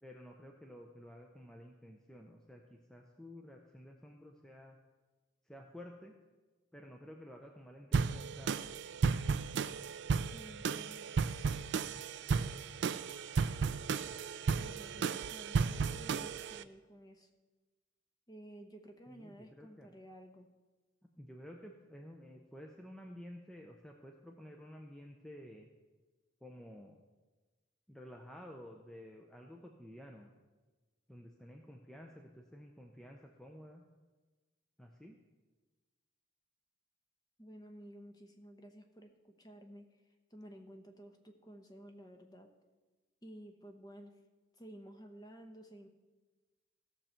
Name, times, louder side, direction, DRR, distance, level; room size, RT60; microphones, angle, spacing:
voice 1, 0.0-4.8 5.5-6.1 6.7-8.6 19.1-19.9 21.2-25.7 26.4-27.0 27.9-30.3 31.1-33.8 34.8-35.2, equal, 5° left, 1 dB, 0.6 m, -52 dB
sound 1, 7.9-16.6, right 5 dB, 60° right, 0.4 m, -34 dB
voice 2, 10.3-11.1 14.5-17.3 18.3-20.5 37.4-39.9 40.3-42.5 43.2-44.1 44.6-45.9, right 1 dB, 20° left, 5 dB, 1.0 m, -53 dB
16.0 x 6.7 x 4.4 m, 1.2 s
head